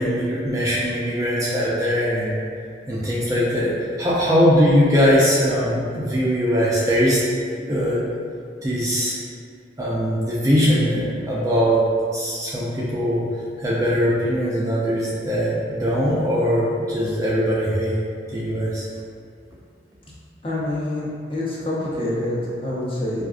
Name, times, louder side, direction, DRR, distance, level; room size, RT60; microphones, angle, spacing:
voice 1, 0.0-2.4 2.9-3.7 4.0-7.2 7.6-8.0 8.6-9.2 9.8-11.8 12.1-13.2 13.6-18.0 18.3-18.9, equal, 20° right, -7 dB, 0.4 m, -21 dB
voice 2, 20.4-23.3, left 1 dB, 30° left, -7 dB, 0.7 m, -26 dB
4.8 x 2.4 x 2.4 m, 2.2 s
head